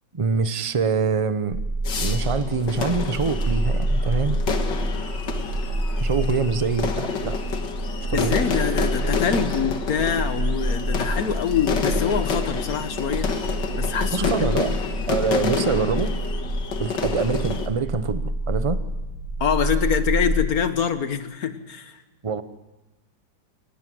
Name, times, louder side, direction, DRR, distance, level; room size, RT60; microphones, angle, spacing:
voice 1, 0.1-1.6 1.9-4.4 6.0-7.4 8.1-8.4 14.1-14.7 15.1-16.1 16.8-18.8 22.2-22.4, right 5 dB, 30° right, 11 dB, 0.6 m, -25 dB
sound 1, 1.5-20.4, right 1 dB, 55° right, 4.1 m, -27 dB
sound 2, 1.8-17.7, left 5 dB, 70° left, 2.2 m, -29 dB
voice 2, 8.1-13.3 13.8-14.5 19.4-22.0, left 7 dB, 55° left, 10 dB, 1.7 m, -25 dB
22.5 x 19.0 x 7.8 m, 1.1 s
omnidirectional pair, 2.0 m